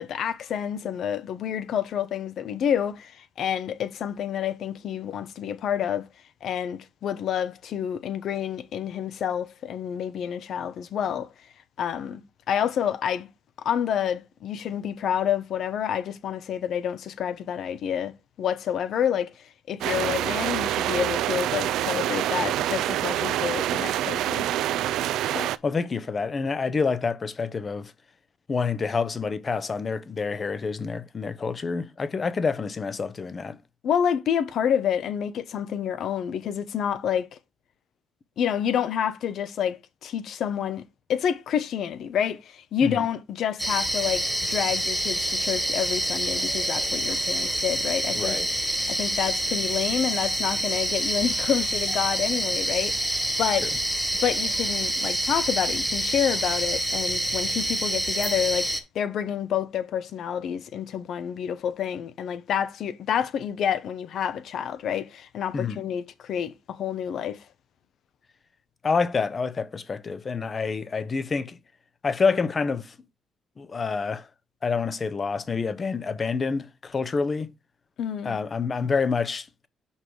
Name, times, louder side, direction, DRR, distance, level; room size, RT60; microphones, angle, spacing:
voice 1, 0.0-6.0 6.4-11.3 11.8-12.2 12.5-13.3 13.6-18.1 18.4-24.5 25.3-25.5 33.8-37.3 38.4-40.8 41.1-48.3 48.9-53.7 54.2-58.7 58.9-67.4 78.0-78.4, left 9 dB, 70° left, 0.9 m, -28 dB
sound 1, 19.8-25.6, right 12 dB, 85° right, 0.4 m, -26 dB
voice 2, 25.6-27.9 28.5-33.6 42.8-43.0 48.1-48.5 53.6-53.7 65.5-65.8 68.8-71.6 72.0-73.0 73.6-74.3 74.6-77.5 78.2-79.7, left 5 dB, 40° left, 0.8 m, -27 dB
sound 2, 43.6-58.8, right 1 dB, 5° right, 1.5 m, -27 dB
5.7 x 4.7 x 4.9 m
cardioid pair, 90°, 0 cm